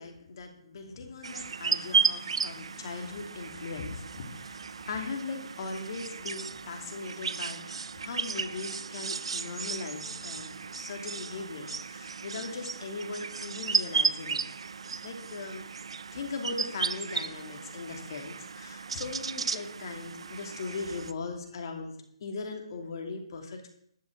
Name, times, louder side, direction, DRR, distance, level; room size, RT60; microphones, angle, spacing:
voice 1, 0.0-14.4 14.8-15.6 16.1-21.9 22.2-23.7, left 4 dB, 50° left, 4 dB, 2.8 m, -39 dB
sound 1, 1.2-21.1, right 5 dB, 70° right, 0.7 m, -34 dB
12.5 x 6.4 x 8.0 m, 0.68 s
hypercardioid pair, 155°, 3 cm